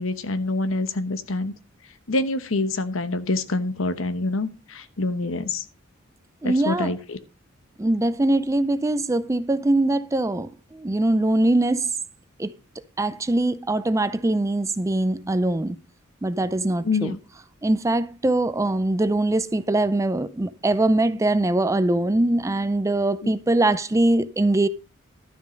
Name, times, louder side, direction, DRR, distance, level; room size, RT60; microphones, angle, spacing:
voice 1, 0.0-1.5 2.1-5.6 6.4-7.2 16.8-17.2, left 2 dB, 75° left, 1.1 m, -26 dB
voice 2, 6.4-7.0 7.8-11.9 12.4-12.5 13.0-15.8 16.2-17.2 17.6-24.7, right 2 dB, 15° right, 0.4 m, -22 dB
12.0 x 6.3 x 5.2 m
head